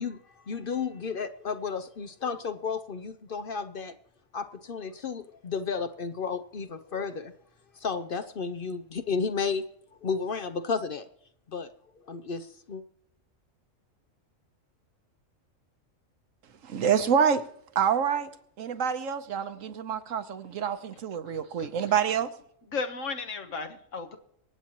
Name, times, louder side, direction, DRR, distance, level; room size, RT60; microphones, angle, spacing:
voice 1, 0.0-3.9 4.3-7.3 7.7-9.6 10.0-11.1 11.5-11.7 12.0-12.8, left 5 dB, 55° left, 0.7 m, -32 dB
voice 2, 16.6-17.4 17.7-18.3 18.6-22.3, right 7 dB, 80° right, 1.3 m, -27 dB
voice 3, 21.3-22.0 22.7-24.2, left 4 dB, 70° left, 1.6 m, -35 dB
25.5 x 8.6 x 3.0 m
omnidirectional pair, 1.3 m